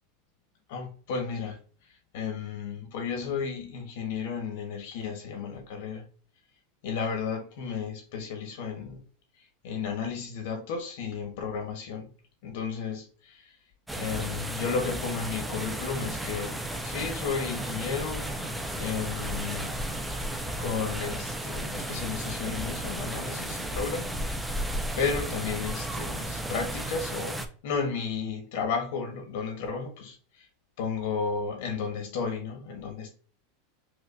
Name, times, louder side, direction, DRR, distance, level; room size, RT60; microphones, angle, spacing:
voice 1, 0.7-1.6 2.1-6.0 6.8-9.0 9.6-12.1 12.4-13.5 13.9-16.5 16.8-19.9 20.6-24.5 25.0-30.2 30.8-33.1, left 5 dB, 65° left, 1.2 m, -33 dB
sound 1, 13.9-27.5, right 1 dB, 5° right, 0.4 m, -34 dB
Engine starting, 15.5-23.6, left 5 dB, 45° left, 0.8 m, -49 dB
4.9 x 2.4 x 2.5 m
supercardioid pair, 160°, 0 cm